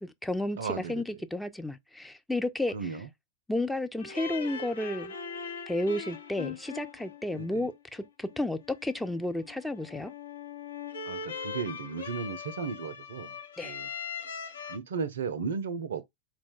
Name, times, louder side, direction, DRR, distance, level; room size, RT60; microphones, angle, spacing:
voice 1, 0.0-2.7 3.5-5.1 5.7-10.1 13.6-13.8, left 1 dB, 5° left, 0.4 m, -32 dB
voice 2, 0.6-1.2 2.7-3.1 7.3-7.7 11.0-13.4 13.6-13.9 14.7-16.0, right 5 dB, 65° right, 0.4 m, -35 dB
sound 1, 4.0-14.8, left 6 dB, 70° left, 0.7 m, -41 dB
4.2 x 2.2 x 4.2 m
figure-of-eight pair, 90°, 0 cm